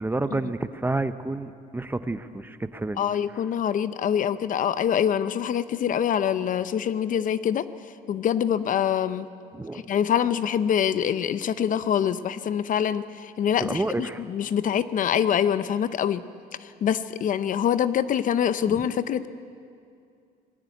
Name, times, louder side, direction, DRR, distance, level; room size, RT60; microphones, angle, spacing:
voice 1, 0.0-3.0 9.5-9.8 13.6-14.2 18.7-18.8, right 2 dB, 10° right, 11 dB, 0.8 m, -29 dB
voice 2, 3.0-7.7 8.1-9.3 9.7-16.2 16.6-19.3, left 9 dB, 50° left, 14 dB, 0.7 m, -25 dB
20.0 x 16.5 x 9.3 m, 2.4 s
cardioid pair, 110°, 17 cm